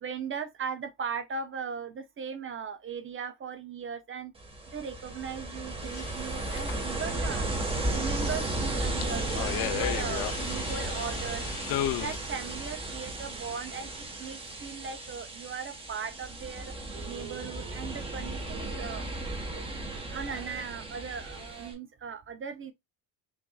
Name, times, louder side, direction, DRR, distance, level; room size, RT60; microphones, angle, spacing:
voice 1, 0.0-4.3 4.7-7.5 7.9-11.5 11.9-16.7 17.0-19.1 20.1-22.7, right 6 dB, 30° right, 0.7 m, -38 dB
Ocean, 4.4-21.7, right 2 dB, 15° right, 1.2 m, -35 dB
sound 1, 5.8-12.2, left 13 dB, 60° left, 0.5 m, -37 dB
sound 2, 16.7-21.7, right 9 dB, 75° right, 1.2 m, -49 dB
5.9 x 2.5 x 2.3 m
cardioid pair, 120°, 42 cm